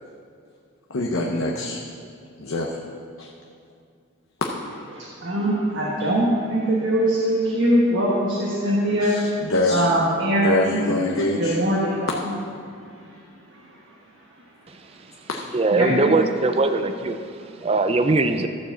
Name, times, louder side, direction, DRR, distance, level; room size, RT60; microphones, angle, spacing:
voice 1, 0.9-1.8 2.4-2.7 3.2-3.3 9.0-9.9 10.4-11.6 15.3-15.4, left 2 dB, 75° left, -1 dB, 0.8 m, -24 dB
voice 2, 4.9-9.2 9.7-10.8 11.4-12.2 15.7-16.2, right 1 dB, 60° right, -5 dB, 1.5 m, -22 dB
voice 3, 15.5-18.5, right 3 dB, 30° right, 8 dB, 0.4 m, -21 dB
13.0 x 4.7 x 7.3 m, 2.3 s
head